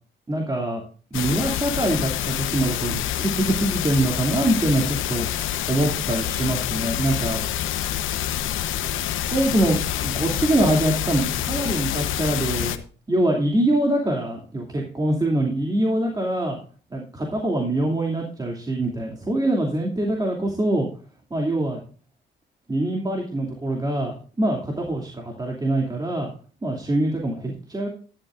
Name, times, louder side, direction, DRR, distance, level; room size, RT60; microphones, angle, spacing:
voice 1, 0.3-0.8 1.1-5.3 5.7-7.4 9.2-12.7 13.1-16.6 16.9-20.9 21.3-21.8 22.7-26.3 26.6-27.9, right 1 dB, 20° right, 0 dB, 2.7 m, -24 dB
sound 1, 1.1-12.8, left 11 dB, 85° left, 1.0 m, -27 dB
12.0 x 11.5 x 2.5 m, 0.39 s
cardioid pair, 90°, 20 cm